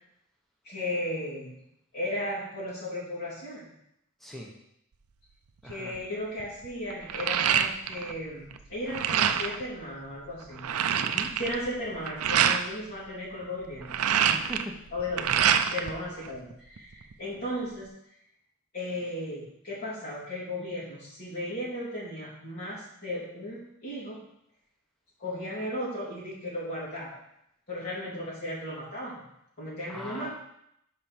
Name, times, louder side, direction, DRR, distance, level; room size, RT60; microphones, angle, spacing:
voice 1, 0.6-1.6 1.9-3.7 5.6-10.7 11.2-14.0 14.9-17.9 18.7-24.2 25.2-27.2 27.7-29.2 29.6-30.3, left 1 dB, 45° left, -9 dB, 3.0 m, -35 dB
voice 2, 4.2-4.5 5.6-6.0 11.0-11.4 14.3-14.8 29.9-30.3, equal, ahead, -2 dB, 0.9 m, -40 dB
sound 1, 5.7-6.0 6.4-8.1 8.4-9.6 10.1-10.2 10.4-12.6 13.6-15.9 16.2-17.1, right 8 dB, 85° right, 0.5 m, -26 dB
5.5 x 5.1 x 5.8 m, 0.77 s
head